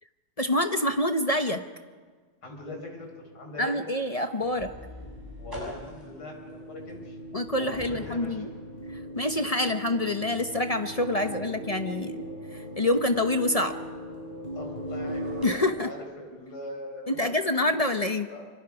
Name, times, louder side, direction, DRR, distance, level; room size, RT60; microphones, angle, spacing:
voice 1, 0.4-1.6 3.6-4.7 7.3-8.5 8.9-12.2 12.5-13.8 15.4-15.9 17.1-18.3, left 1 dB, 30° left, 7 dB, 0.7 m, -26 dB
voice 2, 2.4-3.1 3.3-3.7 5.4-7.2 7.5-8.4 11.2-11.6 14.6-18.5, left 2 dB, 85° left, 1 dB, 5.3 m, -41 dB
sound 1, 2.4-15.5, right 1 dB, 30° right, 3.8 m, -40 dB
sound 2, 4.4-15.6, left 1 dB, 10° right, 6.4 m, -48 dB
27.0 x 25.0 x 4.9 m, 1.5 s
omnidirectional pair, 1.8 m